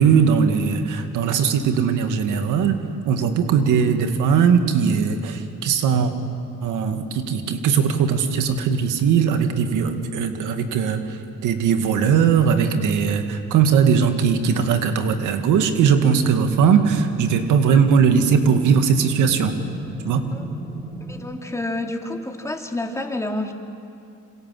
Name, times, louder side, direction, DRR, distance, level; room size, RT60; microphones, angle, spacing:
voice 1, 0.0-2.8 3.1-6.1 6.6-11.0 11.4-19.6 20.1-20.2, right 6 dB, 90° right, 6 dB, 2.2 m, -19 dB
sound 1, 15.0-21.3, right 1 dB, 10° right, 4.4 m, -37 dB
voice 2, 21.1-23.5, left 2 dB, 10° left, 2 dB, 2.8 m, -29 dB
27.5 x 26.0 x 7.8 m, 2.5 s
cardioid pair, 90°, 30 cm